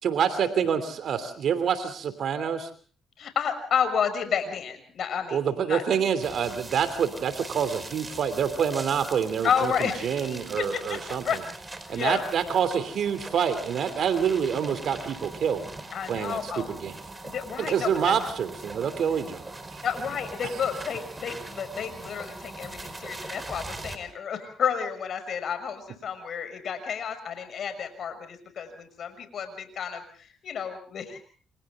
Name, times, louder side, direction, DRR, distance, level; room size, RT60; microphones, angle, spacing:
voice 1, 0.0-2.7 5.3-11.2 11.9-15.7 16.1-16.9 17.7-19.4 19.7-19.8, right 7 dB, 65° right, 11 dB, 3.0 m, -27 dB
voice 2, 3.2-6.0 9.4-11.4 11.9-12.2 15.9-16.7 17.2-18.1 19.8-31.2, left 7 dB, 60° left, 9 dB, 6.4 m, -31 dB
sound 1, 6.2-24.0, right 2 dB, 20° right, 4.7 m, -41 dB
29.0 x 27.0 x 3.7 m, 0.43 s
cardioid pair, 90°, 0 cm